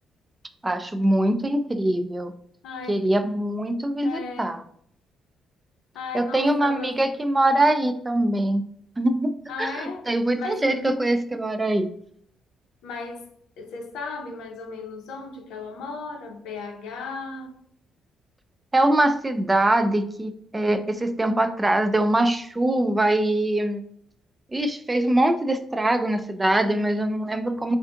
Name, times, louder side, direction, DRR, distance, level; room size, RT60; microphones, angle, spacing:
voice 1, 0.6-2.3 2.9-4.6 6.1-8.6 9.0-11.9 18.7-23.8 24.5-27.8, right 1 dB, 20° right, 0.3 m, -23 dB
voice 2, 2.6-3.1 4.0-4.6 5.9-7.0 9.5-10.1 10.4-10.9 12.8-13.3 13.6-17.5, left 4 dB, 90° left, 0.6 m, -36 dB
3.4 x 2.5 x 2.5 m
cardioid pair, 90°, 0 cm